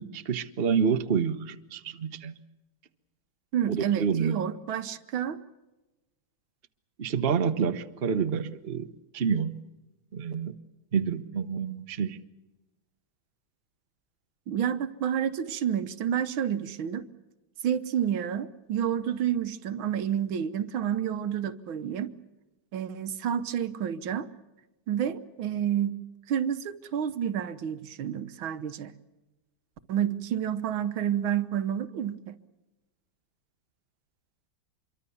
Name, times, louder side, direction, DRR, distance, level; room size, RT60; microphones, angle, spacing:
voice 1, 0.0-2.4 3.7-4.4 7.0-8.8 9.1-9.6 10.1-10.6 10.9-12.2, right 6 dB, 35° right, 1.0 m, -28 dB
voice 2, 3.5-5.4 14.5-17.0 17.6-22.1 22.7-24.3 24.9-28.9 29.9-32.4, right 9 dB, 75° right, 1.8 m, -29 dB
26.5 x 23.5 x 7.0 m
omnidirectional pair, 2.2 m